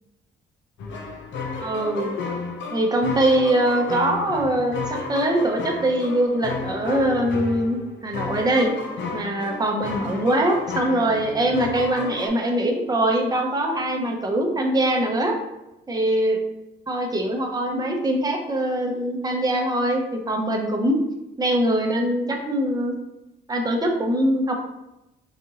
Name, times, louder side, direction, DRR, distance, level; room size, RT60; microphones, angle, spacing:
sound 1, 0.8-12.3, left 4 dB, 70° left, 0.7 m, -32 dB
voice 1, 1.6-2.2 2.7-8.7 9.1-15.4 15.9-16.4 16.9-21.0 21.4-22.9 23.5-24.5, right 1 dB, 20° right, 1 dB, 0.8 m, -22 dB
5.0 x 2.6 x 2.9 m, 0.90 s
cardioid pair, 90°, 20 cm